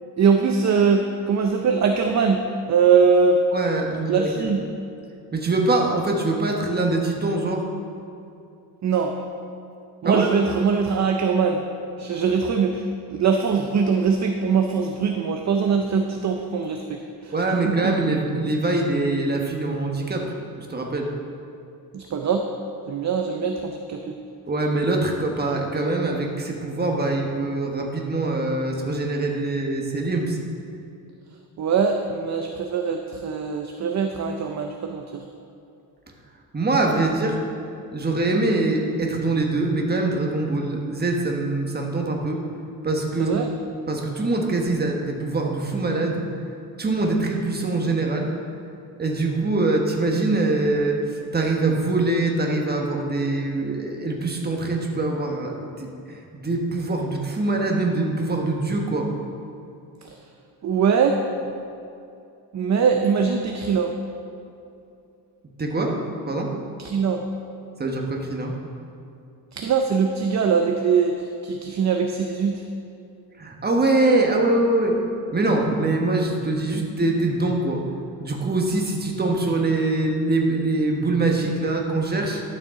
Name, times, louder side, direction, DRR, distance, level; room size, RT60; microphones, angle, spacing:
voice 1, 0.2-3.4 4.1-4.6 8.8-9.2 10.0-11.6 12.0-17.3 17.7-17.9 21.9-22.5 22.9-24.2 31.6-35.2 43.2-43.5 60.0-60.2 60.6-61.2 62.5-63.9 66.8-67.2 69.5-72.6, right 5 dB, 45° right, 4 dB, 0.6 m, -22 dB
voice 2, 3.5-4.5 5.3-7.6 10.0-10.3 17.3-20.3 20.6-21.1 24.5-30.4 36.5-37.4 37.9-42.4 42.8-43.4 43.9-46.2 46.8-48.3 49.0-59.1 65.6-66.0 66.2-66.5 67.8-68.5 73.4-75.0 75.3-77.8 78.2-82.4, right 2 dB, 25° right, 1 dB, 1.3 m, -23 dB
12.0 x 6.7 x 3.7 m, 2.6 s
cardioid pair, 105°, 40 cm